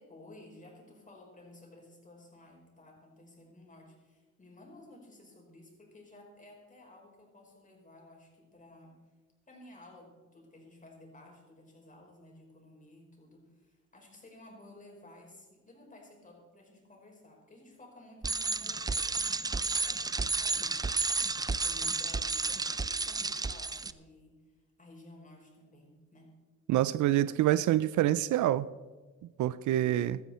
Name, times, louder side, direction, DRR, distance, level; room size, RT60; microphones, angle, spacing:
voice 1, 0.0-9.0 9.5-26.3, left 1 dB, 25° left, 5.0 m, -55 dB
Bicycle, 18.2-23.9, right 3 dB, 15° right, 0.4 m, -31 dB
voice 2, 26.7-28.7 29.4-30.2, right 13 dB, 75° right, 0.5 m, -26 dB
16.0 x 13.0 x 4.3 m
cardioid pair, 90°, 30 cm